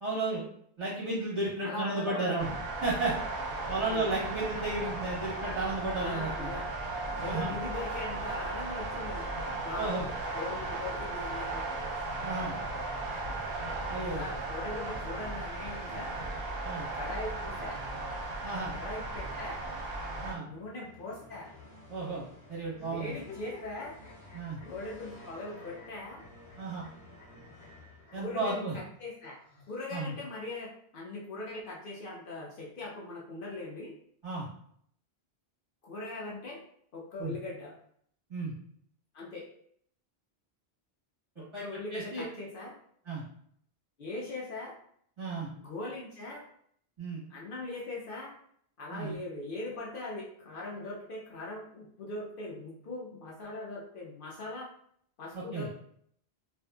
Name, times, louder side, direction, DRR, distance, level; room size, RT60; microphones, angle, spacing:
voice 1, 0.0-0.4 0.8-2.5 2.8-3.1 3.7-6.5 7.2-7.5 9.7-10.1 12.2-12.5 13.9-14.2 16.6-16.8 18.4-18.7 20.2-20.4 21.9-22.2 22.5-23.1 24.3-24.6 26.6-26.8 28.1-28.7 29.9-30.1 34.2-34.5 37.2-37.3 38.3-38.5 41.4-41.6 41.9-42.2 43.1-43.2 45.2-45.5 47.0-47.2 48.9-49.1 55.3-55.7, right 3 dB, 30° right, -9 dB, 1.1 m, -33 dB
voice 2, 1.6-2.6 3.8-4.1 6.0-6.7 7.2-9.9 10.3-11.6 14.0-16.1 16.9-17.8 18.7-19.6 20.4-21.5 22.8-23.9 24.6-26.2 28.1-29.4 29.7-33.9 35.8-36.6 36.9-37.7 39.1-39.5 41.4-42.7 44.0-44.8 45.4-46.4 47.3-48.3 48.8-54.7 55.2-55.8, left 2 dB, 65° left, -4 dB, 0.7 m, -40 dB
sound 1, 2.4-20.3, right 2 dB, 70° right, 0.8 m, -36 dB
sound 2, 20.0-28.6, left 1 dB, 35° left, 0.8 m, -53 dB
sound 3, 22.7-25.3 25.5-26.9 27.2-27.3 27.6-27.7 28.0-28.2 29.2-30.2, left 2 dB, 80° left, 1.0 m, -53 dB
2.6 x 2.4 x 2.2 m, 0.65 s
omnidirectional pair, 1.1 m